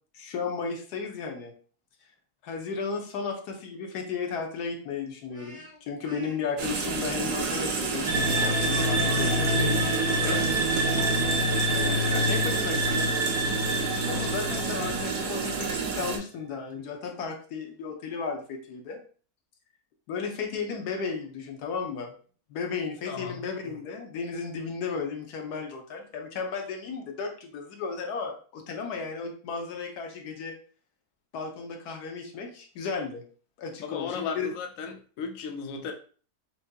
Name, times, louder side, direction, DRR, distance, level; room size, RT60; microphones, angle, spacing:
voice 1, 0.1-1.5 2.4-10.4 11.7-13.1 14.0-19.0 20.1-22.1 22.5-30.5 31.3-33.2 33.6-34.5, left 5 dB, 85° left, 3 dB, 1.3 m, -34 dB
Speech, 5.3-6.4 7.2-10.3, equal, 30° right, 0.7 m, -45 dB
sound 1, 6.6-16.2, right 5 dB, 85° right, 1.3 m, -30 dB
sound 2, 8.1-15.6, equal, 65° right, 1.2 m, -27 dB
voice 2, 23.1-23.4 33.8-35.9, left 5 dB, 65° left, 4 dB, 1.0 m, -35 dB
6.0 x 2.7 x 2.2 m, 0.41 s
omnidirectional pair, 1.6 m